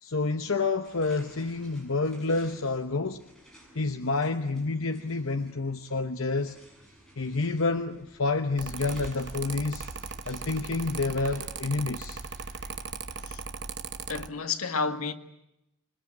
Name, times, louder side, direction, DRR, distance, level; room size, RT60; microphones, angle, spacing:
voice 1, 0.0-3.2 3.7-6.6 7.2-9.9 10.3-12.2, left 3 dB, 75° left, 1.0 m, -29 dB
sound 1, 0.8-14.4, right 1 dB, ahead, 7.0 m, -56 dB
Mechanical fan, 8.6-14.3, right 5 dB, 55° right, 1.0 m, -38 dB
voice 2, 14.1-15.1, left 4 dB, 90° left, 1.8 m, -31 dB
27.0 x 22.5 x 8.7 m
head